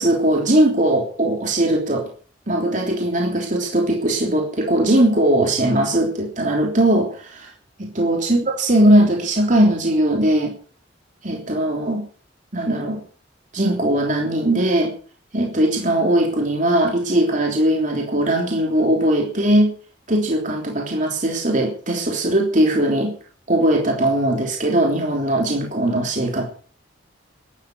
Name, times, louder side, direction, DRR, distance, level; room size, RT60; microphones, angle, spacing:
voice 1, 0.0-2.1 2.5-7.5 7.9-10.5 11.2-12.0 12.5-13.0 13.5-14.9 15.3-19.7 20.1-23.1 23.5-26.5, right 1 dB, 40° right, 1 dB, 3.3 m, -19 dB
13.5 x 12.0 x 7.8 m, 0.42 s
head